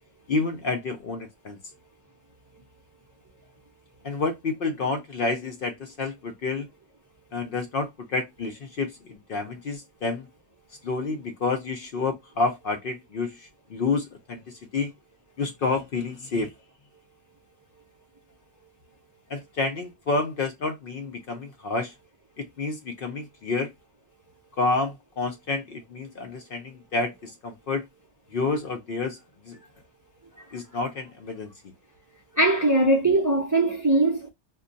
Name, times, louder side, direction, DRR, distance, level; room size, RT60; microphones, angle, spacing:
voice 1, 0.3-1.6 4.0-6.7 7.3-10.3 10.8-14.4 14.7-14.9 15.4-16.5 19.3-21.9 22.4-23.7 24.6-27.9 28.3-29.2 29.4-29.6 30.5-31.5, left 3 dB, 60° left, 0.7 m, -29 dB
voice 2, 32.3-34.3, right 2 dB, 25° right, 0.5 m, -21 dB
2.3 x 2.2 x 3.8 m
omnidirectional pair, 1.2 m